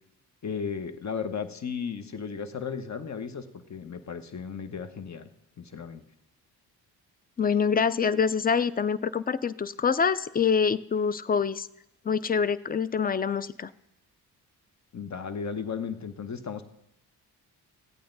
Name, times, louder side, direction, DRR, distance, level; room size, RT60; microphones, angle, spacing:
voice 1, 0.4-5.3 5.6-6.0 14.9-16.6, left 6 dB, 40° left, 10 dB, 1.1 m, -35 dB
voice 2, 7.4-11.7 12.1-13.7, left 6 dB, 20° left, 17 dB, 0.4 m, -25 dB
15.0 x 8.6 x 3.9 m, 0.87 s
supercardioid pair, 50°, 42 cm